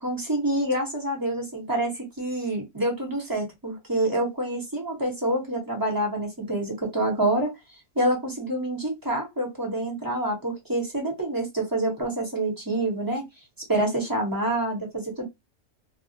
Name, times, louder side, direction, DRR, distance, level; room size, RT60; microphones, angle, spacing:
voice 1, 0.0-1.9 2.2-7.5 7.9-13.3 13.7-15.2, right 1 dB, 20° right, 0.7 m, -27 dB
2.3 x 2.1 x 2.7 m
omnidirectional pair, 1.4 m